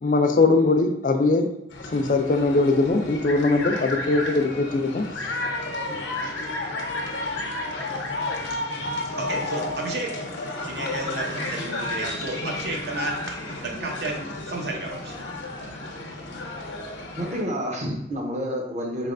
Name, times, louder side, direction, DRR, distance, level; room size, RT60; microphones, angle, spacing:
voice 1, 0.0-1.5 1.9-5.1, left 3 dB, 45° left, 6 dB, 0.3 m, -21 dB
sound 1, 1.7-17.4, left 2 dB, 90° left, 0.7 m, -32 dB
voice 2, 9.2-10.1 10.6-13.2 13.6-15.1, right 2 dB, 70° right, 0 dB, 0.7 m, -32 dB
voice 3, 17.2-19.1, equal, 40° right, 0 dB, 0.7 m, -29 dB
4.0 x 3.2 x 2.5 m, 0.83 s
head